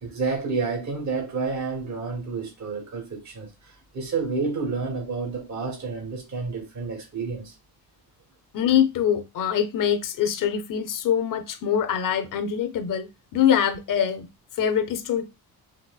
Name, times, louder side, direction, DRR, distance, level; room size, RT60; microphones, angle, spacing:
voice 1, 0.0-7.5, right 4 dB, 45° right, 1.1 m, -30 dB
voice 2, 8.5-14.3 14.6-15.3, left 9 dB, 60° left, 0.6 m, -24 dB
4.1 x 2.6 x 2.2 m
cardioid pair, 105°, 37 cm